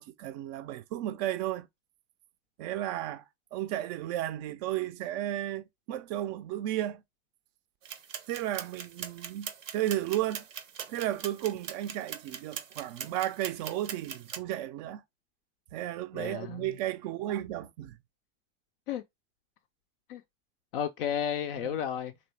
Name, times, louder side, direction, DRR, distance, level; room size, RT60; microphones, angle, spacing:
voice 1, 0.0-1.7 2.6-3.2 3.5-7.0 8.3-10.5 10.9-15.0 15.7-18.0 21.6-21.8, right 13 dB, 35° right, 0.4 m, -34 dB
sound 1, 7.8-14.4, right 8 dB, 80° right, 0.6 m, -42 dB
voice 2, 16.1-16.7 18.9-19.0 20.1-20.2 20.7-22.1, left 9 dB, 45° left, 0.4 m, -32 dB
3.1 x 2.6 x 3.0 m
figure-of-eight pair, 85°, 38 cm